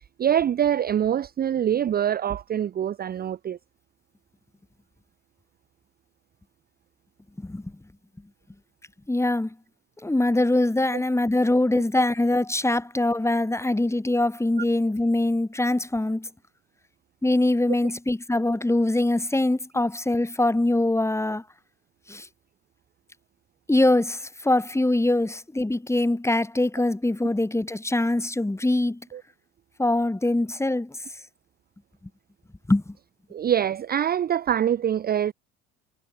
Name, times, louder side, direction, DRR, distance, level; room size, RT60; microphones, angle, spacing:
voice 1, 0.2-3.6 10.9-11.0 29.1-29.2 33.3-35.3, right 9 dB, 25° right, 0.7 m, -24 dB
voice 2, 7.4-7.7 9.1-9.5 10.0-16.3 17.2-21.4 22.1-22.3 23.7-29.0 29.8-31.0 32.7-33.0, left 2 dB, 5° left, 2.8 m, -23 dB
hypercardioid pair, 70°, 37 cm